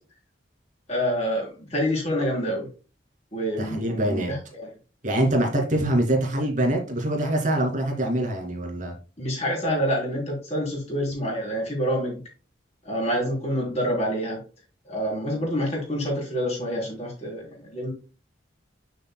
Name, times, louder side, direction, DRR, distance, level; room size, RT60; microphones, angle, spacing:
voice 1, 0.9-2.7 3.3-4.7 9.2-12.2 12.9-14.4 14.9-17.5 17.7-17.9, equal, 35° left, -2 dB, 3.7 m, -27 dB
voice 2, 3.6-4.3 5.0-8.9, right 1 dB, 40° right, 1 dB, 2.6 m, -24 dB
9.0 x 6.7 x 2.3 m, 0.34 s
head